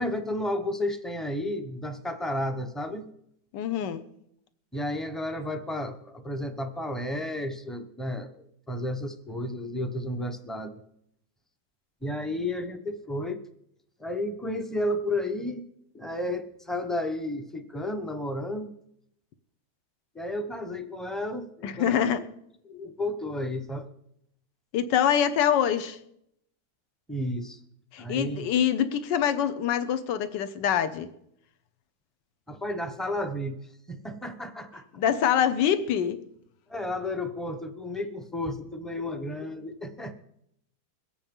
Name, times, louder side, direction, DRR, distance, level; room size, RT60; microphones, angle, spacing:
voice 1, 0.0-3.1 4.7-10.8 12.0-13.4 14.0-15.6 15.9-18.8 20.1-22.0 22.6-23.8 27.1-27.6 28.0-28.5 32.5-33.6 33.9-34.8 36.7-40.1, left 1 dB, ahead, 0.5 m, -32 dB
voice 2, 3.5-4.0 21.6-22.2 24.7-26.0 27.9-31.1 35.0-36.2, left 9 dB, 85° left, 1.5 m, -25 dB
21.5 x 8.4 x 5.4 m
omnidirectional pair, 1.9 m